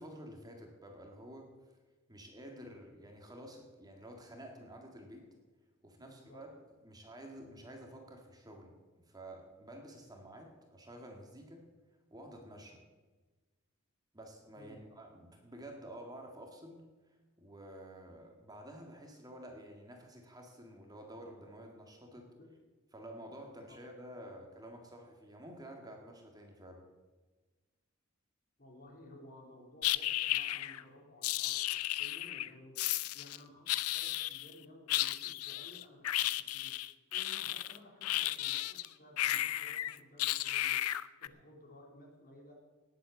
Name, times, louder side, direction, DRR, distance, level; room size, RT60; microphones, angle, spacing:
voice 1, 0.0-1.5 2.1-5.3 5.8-6.5 6.8-11.7 12.1-12.8 14.1-22.3 22.9-26.8, right 1 dB, 20° right, 2 dB, 1.9 m, -50 dB
voice 2, 6.0-6.4 14.6-14.8 22.1-22.5 23.2-23.8 28.6-32.7 33.1-36.7 37.1-40.9 41.2-42.5, left 1 dB, 45° left, 0 dB, 3.7 m, -56 dB
sound 1, 29.8-30.8 31.2-32.5 32.8-33.4 33.7-34.5 34.9-38.9 39.2-41.3, left 14 dB, 85° left, 0.5 m, -34 dB
19.0 x 7.8 x 7.0 m, 1.3 s
head